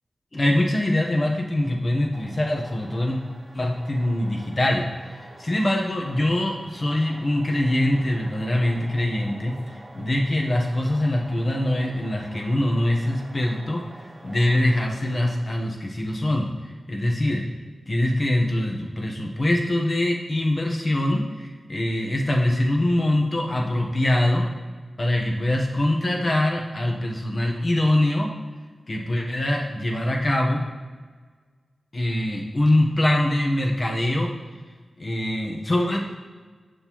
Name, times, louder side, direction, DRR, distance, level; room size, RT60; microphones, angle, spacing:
voice 1, 0.3-3.2 3.5-4.8 5.1-16.5 16.9-17.4 17.9-24.5 25.0-28.3 28.9-30.6 31.9-34.3 35.0-36.0, left 1 dB, 45° left, 0 dB, 1.1 m, -23 dB
sound 1, 2.1-15.3, right 1 dB, 30° right, 1.1 m, -47 dB
7.3 x 6.4 x 3.1 m, 1.4 s
cardioid pair, 50°, 0 cm